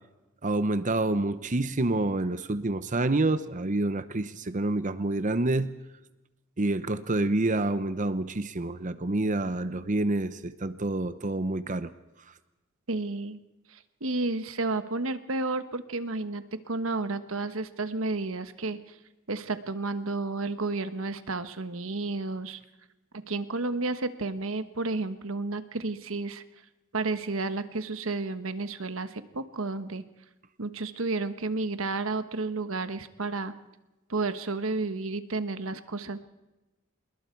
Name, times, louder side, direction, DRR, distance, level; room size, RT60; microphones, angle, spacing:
voice 1, 0.4-5.8 6.6-11.9, right 2 dB, 40° right, 12 dB, 0.8 m, -28 dB
voice 2, 12.9-13.4 13.7-19.0 19.3-22.6 23.1-26.4 26.9-30.0 30.6-33.5 34.1-36.2, right 3 dB, 75° right, 11 dB, 1.3 m, -31 dB
27.0 x 21.0 x 4.6 m, 1.0 s
head